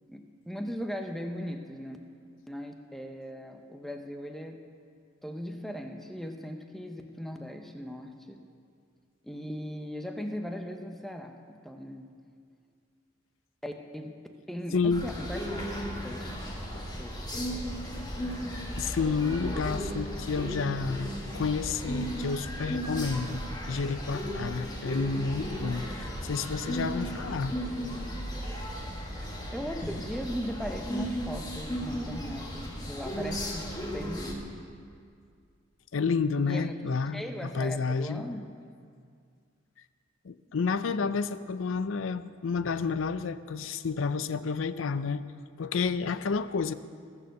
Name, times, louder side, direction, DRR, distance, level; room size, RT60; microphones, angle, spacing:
voice 1, 0.1-2.0 2.5-4.6 5.2-8.4 9.2-12.1 13.6-14.1 14.5-16.4 17.0-17.2 19.1-19.8 24.7-24.8 29.5-33.6 33.9-34.5 36.4-36.8 37.1-38.5, equal, ahead, 4 dB, 0.8 m, -38 dB
voice 2, 14.7-15.1 18.8-21.1 21.3-27.5 35.9-38.2 40.2-45.2 45.6-46.7, left 5 dB, 85° left, 14 dB, 0.5 m, -30 dB
sound 1, 14.9-34.3, equal, 20° left, 1.6 m, -35 dB
20.5 x 7.0 x 6.5 m, 2.2 s
head